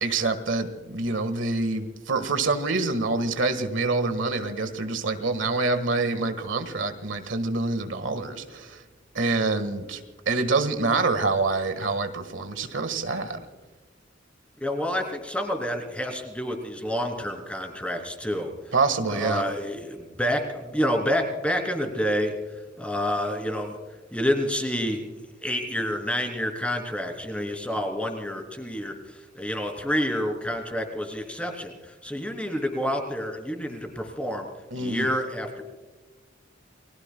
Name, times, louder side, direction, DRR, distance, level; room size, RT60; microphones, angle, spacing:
voice 1, 0.0-8.8 9.1-10.0 10.2-13.4 18.7-19.4 34.7-35.1, right 3 dB, 75° right, 9 dB, 1.6 m, -26 dB
voice 2, 14.6-18.5 19.1-22.3 22.8-23.8 24.1-25.1 25.4-34.5 34.7-35.6, equal, 5° left, 4 dB, 2.9 m, -28 dB
30.0 x 21.0 x 2.3 m, 1.3 s
head